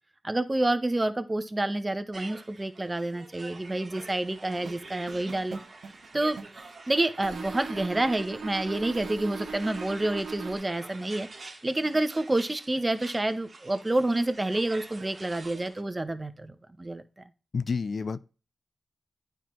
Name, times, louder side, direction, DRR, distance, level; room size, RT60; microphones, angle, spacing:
voice 1, 0.2-5.6 6.1-17.0, right 2 dB, 25° right, 0.7 m, -28 dB
sound 1, 2.1-15.8, right 3 dB, 55° right, 1.3 m, -47 dB
sound 2, 4.6-6.7 7.2-10.6, right 4 dB, 80° right, 1.1 m, -40 dB
voice 2, 17.5-18.2, left 5 dB, 60° left, 0.3 m, -29 dB
9.1 x 4.5 x 3.0 m
cardioid pair, 55°, 0 cm